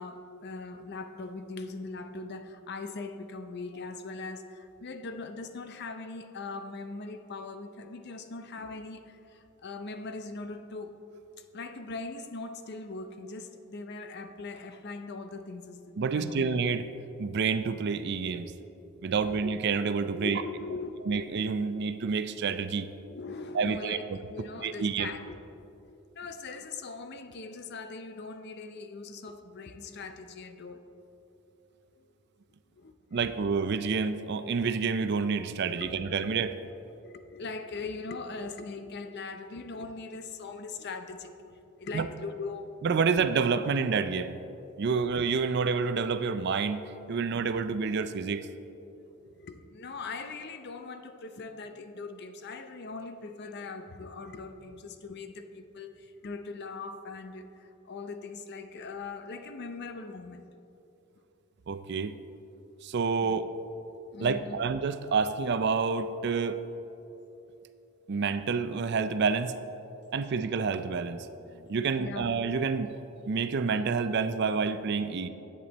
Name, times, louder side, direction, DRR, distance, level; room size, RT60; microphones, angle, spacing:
voice 1, 0.0-11.0 11.4-16.5 19.2-19.4 20.2-21.0 23.1-25.4 26.2-30.8 32.8-33.2 35.8-36.1 36.9-42.7 47.1-47.2 49.3-60.4 63.2-63.3 64.1-64.6 72.0-72.3, left 3 dB, 50° left, 8 dB, 0.6 m, -41 dB
voice 2, 16.0-16.9 17.2-18.5 19.0-20.4 21.1-22.9 23.5-24.2 24.6-25.1 33.1-36.6 41.9-42.1 42.8-44.4 44.8-48.5 61.7-62.1 62.8-63.5 64.2-66.6 68.1-69.5 70.1-71.3 71.7-72.9 73.3-75.3, right 5 dB, 55° right, 11 dB, 0.4 m, -28 dB
10.5 x 8.3 x 4.1 m, 2.8 s
head